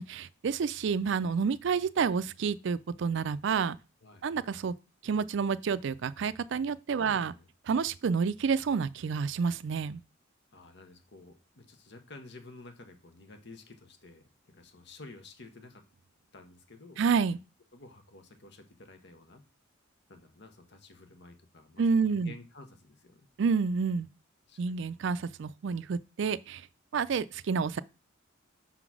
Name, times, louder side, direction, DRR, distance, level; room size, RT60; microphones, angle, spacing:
voice 1, 0.0-3.8 4.2-4.7 5.0-7.3 7.7-10.0 17.0-17.4 21.8-22.3 23.4-24.1 24.6-26.6 26.9-27.8, right 5 dB, 60° right, 0.4 m, -29 dB
voice 2, 7.0-7.5 10.5-15.8 16.3-17.0 17.7-19.4 20.1-23.3 24.5-25.2, left 2 dB, 60° left, 1.1 m, -51 dB
5.8 x 3.9 x 6.0 m
head